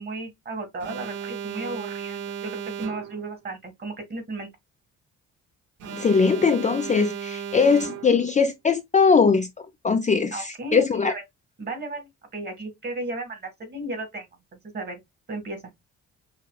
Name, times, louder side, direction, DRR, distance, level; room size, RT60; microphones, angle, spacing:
voice 1, 0.0-4.5 10.3-11.2 11.6-15.0 15.3-15.6, right 2 dB, 35° right, 1.9 m, -34 dB
Alarm, 0.8-3.3 5.8-8.3, right 8 dB, 75° right, 0.9 m, -35 dB
voice 2, 5.9-11.1, left 5 dB, 25° left, 0.4 m, -21 dB
5.7 x 2.1 x 2.3 m
cardioid pair, 90°, 30 cm